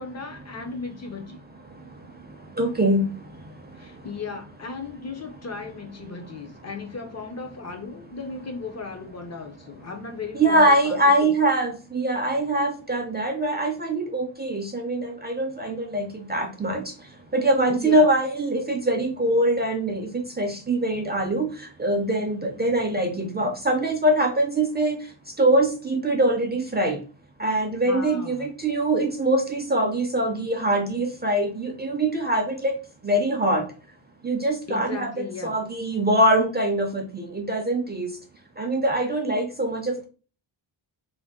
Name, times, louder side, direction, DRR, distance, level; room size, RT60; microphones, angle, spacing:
voice 1, 0.0-1.4 3.7-11.3 17.7-18.1 27.8-28.5 34.7-35.6, left 4 dB, 35° left, 0.5 m, -36 dB
voice 2, 2.6-3.0 10.3-16.8 17.3-20.1 20.4-21.5 21.8-25.0 25.4-27.0 27.4-32.7 33.0-33.6 34.2-38.1 38.6-40.1, right 1 dB, 20° right, 0.4 m, -23 dB
2.6 x 2.5 x 3.5 m
wide cardioid pair, 135°, 48 cm